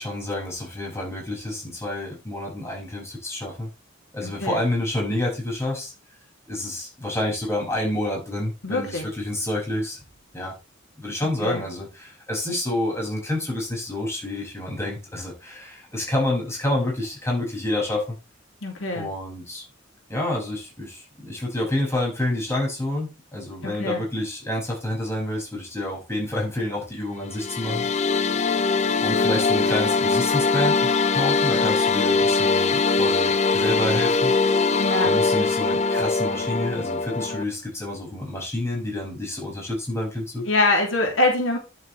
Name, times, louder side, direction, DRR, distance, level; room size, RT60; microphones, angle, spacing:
voice 1, 0.0-3.7 4.1-5.9 6.5-10.0 10.3-10.5 11.0-18.2 18.9-19.6 20.1-27.9 29.0-34.4 35.0-40.5, left 1 dB, 15° left, -3 dB, 6.7 m, -28 dB
voice 2, 4.2-4.6 8.6-9.1 11.2-11.6 18.6-19.1 23.6-24.0 34.8-35.2 40.4-41.6, left 2 dB, 85° left, 2 dB, 3.1 m, -24 dB
sound 1, 27.2-37.4, left 4 dB, 35° left, 0.7 m, -22 dB
10.5 x 8.3 x 3.4 m, 0.29 s
head